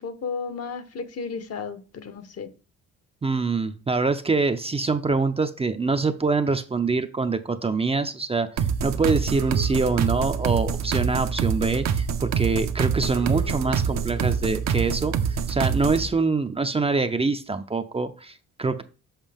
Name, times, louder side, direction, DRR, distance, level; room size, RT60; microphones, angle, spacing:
voice 1, 0.0-2.5, left 5 dB, 55° left, 1.1 m, -33 dB
voice 2, 3.2-18.8, right 4 dB, 20° right, 0.5 m, -25 dB
sound 1, 8.6-16.1, right 7 dB, 60° right, 0.8 m, -26 dB
7.3 x 5.1 x 3.5 m
cardioid pair, 90°, 30 cm